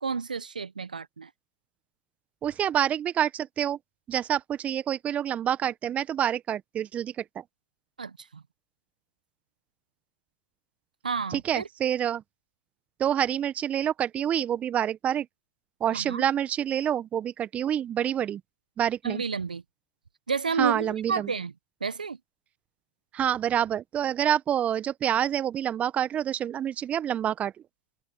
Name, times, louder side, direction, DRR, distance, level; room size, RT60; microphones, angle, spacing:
voice 1, 0.0-1.3 8.0-8.4 11.0-11.7 15.9-16.2 19.0-19.6 20.3-21.5 21.8-22.2, right 5 dB, 85° right, 1.3 m, -31 dB
voice 2, 2.4-3.8 4.1-7.4 11.3-12.2 13.0-15.3 15.8-18.4 18.8-19.2 20.6-21.3 23.1-27.5, right 10 dB, 30° right, 1.5 m, -27 dB
figure-of-eight pair, 85°, 4 cm